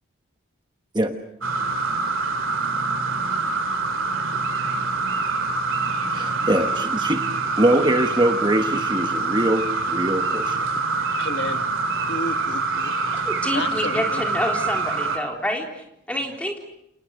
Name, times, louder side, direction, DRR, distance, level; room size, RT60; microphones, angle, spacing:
sound 1, 1.4-15.2, right 3 dB, 70° right, 2.5 m, -25 dB
voice 1, 6.1-7.2 7.6-10.7, right 1 dB, 20° right, 6 dB, 1.2 m, -22 dB
voice 2, 11.2-11.6 12.1-12.9 13.5-14.2 16.2-16.3, left 2 dB, 55° left, 8 dB, 1.6 m, -31 dB
voice 3, 13.2-16.6, equal, 5° left, 2 dB, 3.8 m, -28 dB
29.0 x 27.5 x 6.5 m, 0.81 s
head